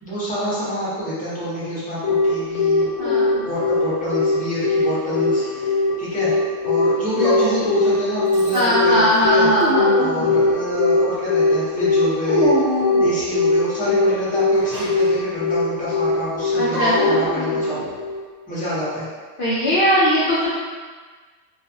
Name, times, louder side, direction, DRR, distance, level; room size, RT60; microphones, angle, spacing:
voice 1, 0.0-2.9 3.5-6.3 6.6-9.5 10.0-12.5 13.0-17.8 18.5-19.1, equal, 10° left, -11 dB, 0.7 m, -27 dB
Telephone, 2.0-18.2, left 4 dB, 85° left, 1.1 m, -19 dB
voice 2, 3.0-3.3 8.5-9.9 16.5-17.2 19.4-20.5, equal, 60° left, -8 dB, 0.6 m, -19 dB
Dog, 3.0-3.8 4.9-5.7 7.2-7.9 8.3-8.8 9.2-10.5 12.3-13.3 14.5-15.0 16.7-18.0, right 1 dB, 65° right, 0.8 m, -26 dB
2.4 x 2.3 x 2.6 m, 1.5 s
omnidirectional pair, 1.3 m